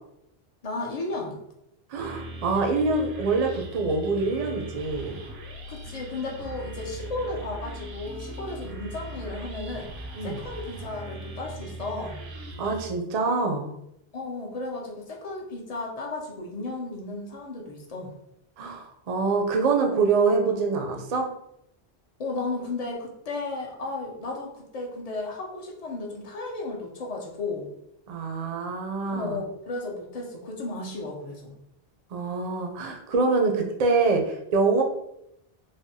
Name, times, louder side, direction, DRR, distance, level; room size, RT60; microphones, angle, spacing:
voice 1, 0.6-1.4 5.7-9.9 10.2-12.2 14.1-18.1 22.2-27.7 29.1-31.6, left 2 dB, 50° left, -1 dB, 0.5 m, -34 dB
voice 2, 1.9-5.2 10.1-10.4 12.6-13.7 18.6-21.3 28.1-29.4 32.1-34.8, right 4 dB, 55° right, 2 dB, 0.4 m, -25 dB
sound 1, 2.0-12.9, right 1 dB, 85° right, 0.8 m, -39 dB
3.3 x 2.1 x 2.6 m, 0.80 s
omnidirectional pair, 1.0 m